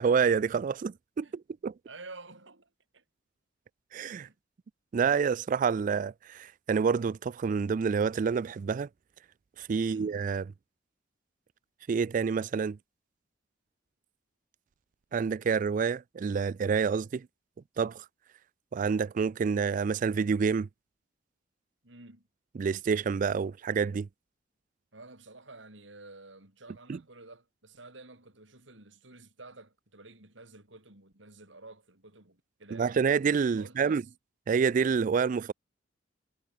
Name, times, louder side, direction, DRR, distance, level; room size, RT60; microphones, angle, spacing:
voice 1, 0.0-1.7 3.9-4.3 4.9-8.9 9.6-10.4 11.9-12.8 15.1-17.3 17.8-18.0 18.7-20.7 22.6-24.1 26.9-27.0 32.7-34.0 34.5-35.5, right 6 dB, 45° right, 0.3 m, -28 dB
voice 2, 1.9-3.0 4.2-4.4 9.8-10.1 21.8-22.3 24.9-33.0 33.6-34.0, right 2 dB, 75° right, 5.2 m, -51 dB
head